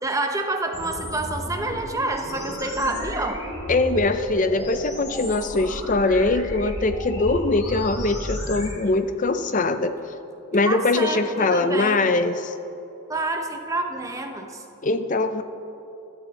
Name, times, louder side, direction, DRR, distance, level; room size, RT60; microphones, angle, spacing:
voice 1, 0.0-3.5 10.6-12.0 13.1-14.6, right 2 dB, 15° right, 4 dB, 0.8 m, -28 dB
sound 1, 0.7-8.7, left 1 dB, 90° left, 3.4 m, -33 dB
voice 2, 3.7-9.9 10.5-12.5 14.8-15.4, left 3 dB, 35° left, 10 dB, 0.5 m, -22 dB
14.5 x 12.5 x 4.1 m, 2.9 s
head